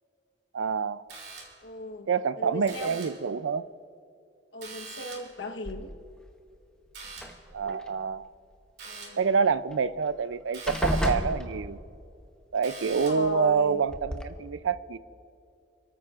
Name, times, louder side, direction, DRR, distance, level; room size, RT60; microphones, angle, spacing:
voice 1, 0.5-1.0 2.1-3.7 7.5-8.3 9.2-11.8 12.5-15.0, right 5 dB, 90° right, 0.4 m, -27 dB
sound 1, 1.1-1.8 2.6-3.3 4.6-5.4 6.9-7.5 8.8-9.3 10.5-11.3 12.6-13.4, right 4 dB, 60° right, 2.8 m, -44 dB
voice 2, 1.6-2.1 2.4-3.0 4.5-5.9 8.8-9.3 12.9-13.8, left 2 dB, 80° left, 1.1 m, -38 dB
sound 2, 5.7-6.2 7.1-7.9 9.7-9.8 10.1-10.3 10.7-12.1 13.2-13.3 13.9-14.2, equal, 5° left, 0.8 m, -32 dB
29.5 x 14.0 x 2.5 m
head